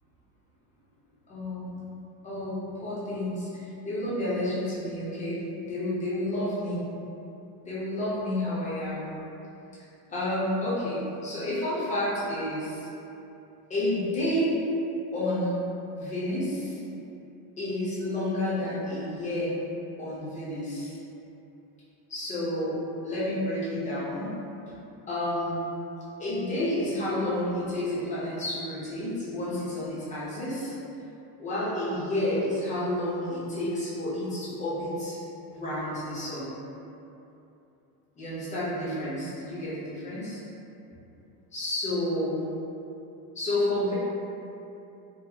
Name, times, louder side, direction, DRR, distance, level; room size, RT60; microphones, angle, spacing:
voice 1, 1.3-1.8 2.2-5.4 5.7-6.8 7.6-9.1 10.1-12.9 13.7-14.6 15.1-15.6 15.9-16.8 17.6-19.5 20.0-21.0 22.1-22.8 23.0-24.3 24.7-24.8 25.1-25.6 26.2-30.7 31.4-35.2 35.5-36.5 38.2-40.4 41.5-42.4 43.4-43.9, left 1 dB, 15° left, -9 dB, 0.7 m, -30 dB
4.0 x 2.1 x 2.7 m, 2.8 s
cardioid pair, 150°, 44 cm